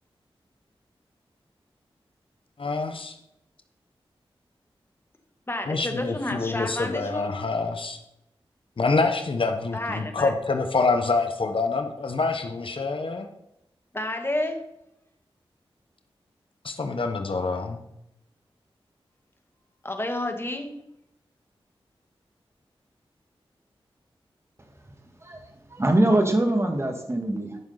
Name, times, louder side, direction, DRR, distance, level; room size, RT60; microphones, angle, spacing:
voice 1, 2.6-3.1 5.6-8.0 8.8-13.3 16.6-17.8, left 3 dB, 60° left, 6 dB, 1.2 m, -26 dB
voice 2, 5.5-7.3 9.7-10.3 13.9-14.6 19.8-20.7, left 1 dB, 25° left, 4 dB, 2.0 m, -30 dB
voice 3, 25.2-27.6, right 1 dB, 25° right, 3 dB, 2.0 m, -23 dB
14.5 x 6.2 x 4.0 m, 0.82 s
cardioid pair, 50°, 10 cm